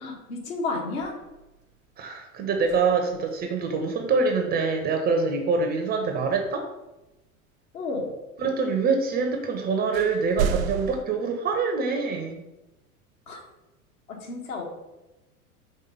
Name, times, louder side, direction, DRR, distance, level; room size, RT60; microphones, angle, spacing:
voice 1, 0.0-1.2 7.7-8.1 13.3-13.4 14.1-14.6, left 3 dB, 60° left, 0 dB, 1.5 m, -31 dB
sound 1, 1.0-1.8 2.6-3.5 7.0-7.1 9.2-9.3 9.9-11.0, right 8 dB, 65° right, 0.5 m, -32 dB
voice 2, 2.0-6.7 8.4-12.4, right 4 dB, 20° right, 4 dB, 0.6 m, -25 dB
5.5 x 3.6 x 5.3 m, 0.98 s
figure-of-eight pair, 85°, 44 cm